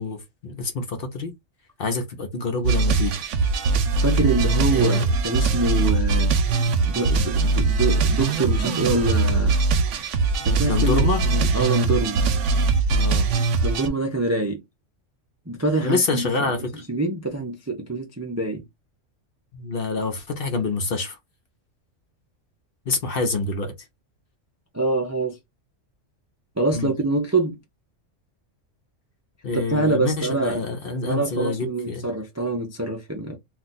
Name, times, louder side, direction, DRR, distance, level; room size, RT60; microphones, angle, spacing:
voice 1, 0.0-1.3 1.8-3.2 4.7-5.0 10.6-11.2 12.9-13.3 15.8-16.8 19.5-21.2 22.9-23.7 26.7-26.9 29.4-32.1, left 3 dB, 55° left, 0.8 m, -26 dB
sound 1, 2.6-13.9, right 3 dB, 75° right, 0.9 m, -21 dB
voice 2, 4.0-6.3 6.7-9.6 10.4-12.3 13.6-14.6 15.5-16.5 16.9-18.7 24.7-25.4 26.6-27.6 29.5-30.6 31.0-33.4, right 2 dB, 25° right, 0.3 m, -25 dB
2.4 x 2.3 x 3.9 m
omnidirectional pair, 1.3 m